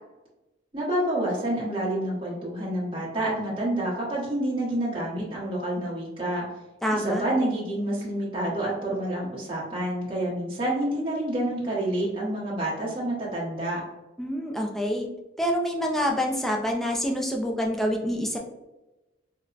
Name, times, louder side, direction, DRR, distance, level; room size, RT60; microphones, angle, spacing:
voice 1, 0.7-6.4 6.9-13.8, right 1 dB, 30° right, -8 dB, 0.8 m, -28 dB
voice 2, 6.8-7.3 14.2-15.1 15.4-18.4, equal, ahead, 0 dB, 0.3 m, -26 dB
4.4 x 2.0 x 2.4 m, 1.0 s
head